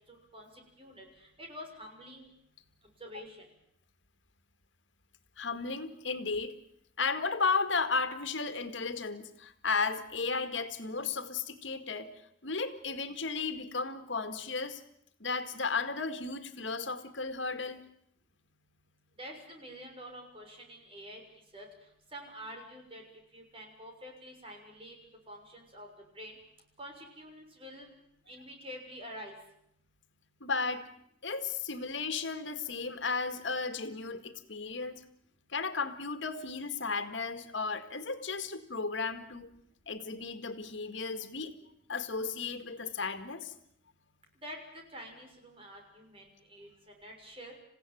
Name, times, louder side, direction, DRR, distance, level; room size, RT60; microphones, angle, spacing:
voice 1, 0.8-2.3 3.0-3.4 19.2-21.2 21.5-21.7 22.1-23.0 23.3-24.9 25.3-25.9 26.1-26.4 26.8-27.9 28.3-29.3 44.4-47.5, equal, 30° right, 3 dB, 6.5 m, -47 dB
voice 2, 5.4-6.5 7.0-12.1 12.4-14.8 15.2-17.8 30.4-30.9 31.2-35.0 35.5-39.5 39.9-41.5 41.9-43.5, left 4 dB, 80° left, 10 dB, 2.0 m, -34 dB
28.5 x 16.0 x 9.3 m, 0.75 s
head